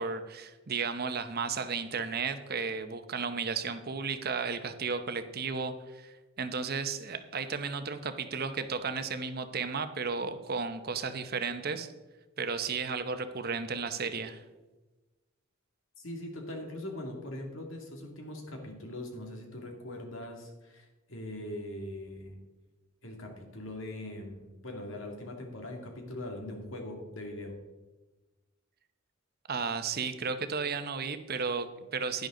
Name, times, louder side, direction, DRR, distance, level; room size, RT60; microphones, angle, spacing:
voice 1, 0.0-11.9 12.4-14.4 29.5-32.3, right 5 dB, 50° right, 10 dB, 0.8 m, -34 dB
voice 2, 16.0-22.4 23.0-27.6, left 1 dB, 75° left, 2 dB, 2.3 m, -41 dB
11.0 x 10.5 x 3.8 m, 1.1 s
head